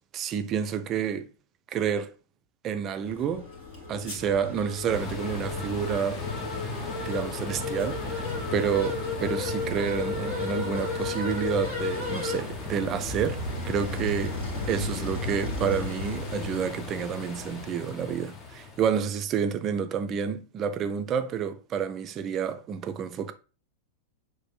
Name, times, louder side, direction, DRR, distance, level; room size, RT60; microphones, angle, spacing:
voice 1, 0.1-1.3 1.7-2.1 2.6-3.5 3.9-6.2 7.1-14.4 14.7-23.3, right 7 dB, 30° right, 0.4 m, -29 dB
sound 1, 3.0-17.6, left 3 dB, 50° left, 1.7 m, -34 dB
sound 2, 4.9-19.1, left 4 dB, 25° left, 0.7 m, -38 dB
6.0 x 2.5 x 2.3 m
figure-of-eight pair, 90°, 0 cm